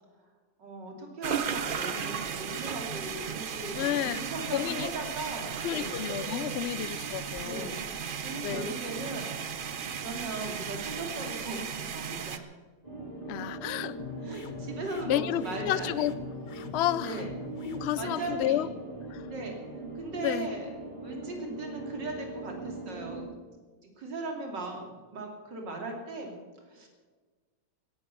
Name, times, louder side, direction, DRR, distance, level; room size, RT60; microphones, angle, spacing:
voice 1, 0.6-6.0 7.4-9.3 10.0-12.4 14.2-15.9 17.0-17.3 18.0-18.6 19.3-19.6 20.0-20.7 21.0-23.3 23.8-26.4 26.7-26.9, right 2 dB, 80° right, 1 dB, 3.6 m, -38 dB
sound 1, 1.2-12.4, right 7 dB, 50° right, 0.6 m, -35 dB
voice 2, 3.7-4.2 4.5-4.9 5.6-7.9 8.4-8.8 13.3-14.0 15.1-16.1 16.5-17.3 17.6-18.7 19.1-19.3 20.2-20.5, left 12 dB, 75° left, 17 dB, 0.6 m, -31 dB
sound 2, 12.8-23.2, right 3 dB, 20° right, 5.5 m, -41 dB
sound 3, 14.0-18.4, left 6 dB, 35° left, 0.8 m, -44 dB
16.5 x 11.0 x 6.9 m, 1.4 s
omnidirectional pair, 1.9 m